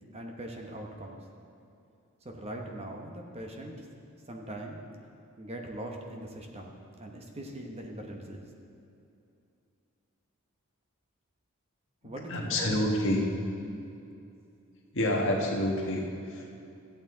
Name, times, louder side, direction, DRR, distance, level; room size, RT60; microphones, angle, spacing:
voice 1, 0.1-1.2 2.2-3.8 4.3-4.8 5.4-8.5 12.0-12.7, right 1 dB, 30° right, 1 dB, 1.0 m, -41 dB
voice 2, 12.0-13.2 14.9-16.6, left 1 dB, 60° left, -1 dB, 1.5 m, -28 dB
14.0 x 8.6 x 3.9 m, 2.6 s
head